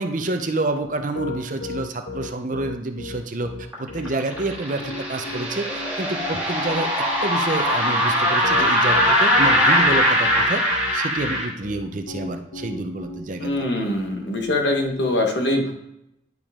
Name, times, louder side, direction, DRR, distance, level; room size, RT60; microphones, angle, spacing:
voice 1, 0.0-3.5 3.8-10.6 10.9-13.5, right 2 dB, 40° right, 7 dB, 0.6 m, -28 dB
Piano, 0.8-15.0, left 3 dB, 85° left, 1.1 m, -35 dB
sound 1, 3.7-11.5, equal, 10° right, 2.2 m, -21 dB
voice 2, 13.4-15.7, left 1 dB, 60° left, 2 dB, 1.3 m, -23 dB
10.5 x 5.0 x 3.6 m, 0.83 s
head